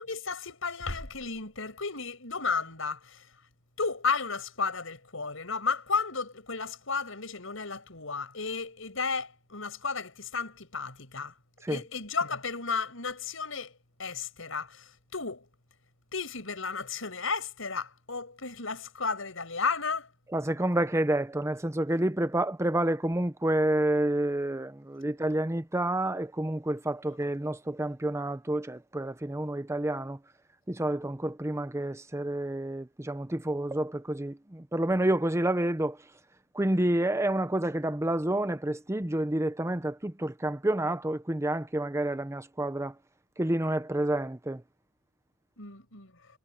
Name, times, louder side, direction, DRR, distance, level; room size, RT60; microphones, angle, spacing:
voice 1, 0.0-3.3 3.8-11.3 11.7-13.7 14.0-15.5 16.1-20.1 45.6-46.1, left 4 dB, 80° left, 6.0 m, -33 dB
voice 2, 20.3-30.2 30.7-36.0 36.5-42.9 43.4-44.6, right 1 dB, 15° right, 0.7 m, -29 dB
head